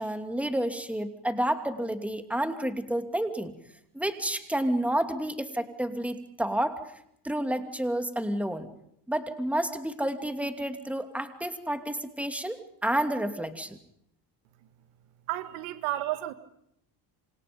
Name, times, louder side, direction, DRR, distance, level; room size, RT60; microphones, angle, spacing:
voice 1, 0.0-3.5 3.9-6.8 7.2-8.7 9.1-13.8, right 1 dB, 5° right, 7 dB, 2.7 m, -30 dB
voice 2, 15.3-16.3, right 15 dB, 80° right, 11 dB, 1.8 m, -31 dB
27.5 x 27.0 x 5.4 m, 0.71 s
supercardioid pair, 95°, 47 cm